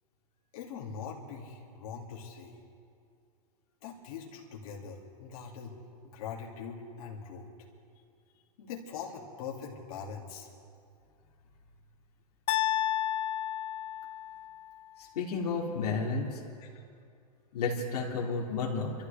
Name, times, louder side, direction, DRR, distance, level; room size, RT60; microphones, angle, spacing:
voice 1, 0.5-2.6 3.8-5.8 6.1-7.5 8.6-10.5 16.6-16.8, left 6 dB, 65° left, -3 dB, 2.6 m, -42 dB
sound 1, 12.5-14.6, left 12 dB, 30° left, 0.4 m, -31 dB
voice 2, 15.0-16.4 17.5-18.9, left 4 dB, 85° left, -2 dB, 2.5 m, -32 dB
26.5 x 13.0 x 3.5 m, 2.4 s
supercardioid pair, 135°, 20 cm